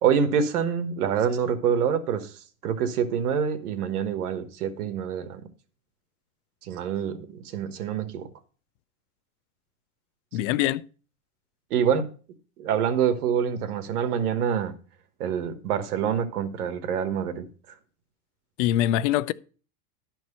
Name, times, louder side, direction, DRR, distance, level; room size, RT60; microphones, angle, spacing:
voice 1, 0.0-2.3 2.6-5.4 6.6-8.3 11.7-12.1 12.6-14.7 15.2-17.4, right 7 dB, 90° right, 1.4 m, -26 dB
voice 2, 10.3-10.8 18.6-19.3, left 13 dB, 55° left, 0.5 m, -23 dB
12.0 x 4.6 x 5.5 m
supercardioid pair, 135°, 44 cm